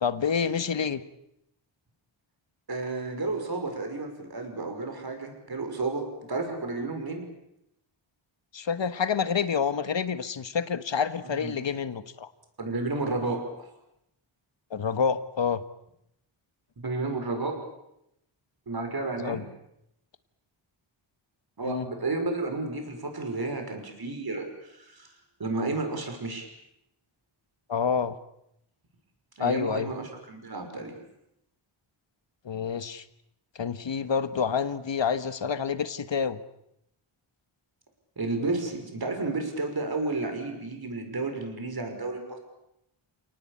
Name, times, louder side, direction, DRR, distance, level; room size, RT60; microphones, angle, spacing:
voice 1, 0.0-1.0 8.5-12.3 14.7-15.6 19.2-19.4 21.6-21.9 27.7-28.2 29.4-29.9 32.4-33.0 33.6-36.4, left 6 dB, 60° left, 12 dB, 1.6 m, -28 dB
voice 2, 2.7-7.2 11.2-11.5 12.6-13.7 16.8-17.6 18.7-19.4 21.6-25.1 25.4-26.5 29.4-30.9 38.2-42.4, right 3 dB, 45° right, 4 dB, 5.9 m, -32 dB
29.0 x 18.5 x 8.8 m, 0.80 s
wide cardioid pair, 110°, 49 cm